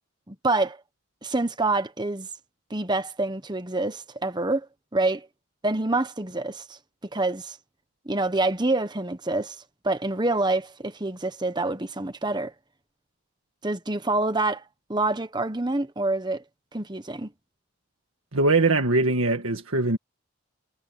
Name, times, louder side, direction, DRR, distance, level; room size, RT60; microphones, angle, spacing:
voice 1, 0.3-0.8 1.2-2.3 2.7-4.7 4.9-5.3 5.6-6.8 7.1-7.6 8.0-9.6 9.8-12.5 13.6-14.6 14.9-16.4 16.7-17.3, right 2 dB, 20° right, 1.2 m, -26 dB
voice 2, 18.3-20.0, right 2 dB, 80° right, 1.7 m, -22 dB
head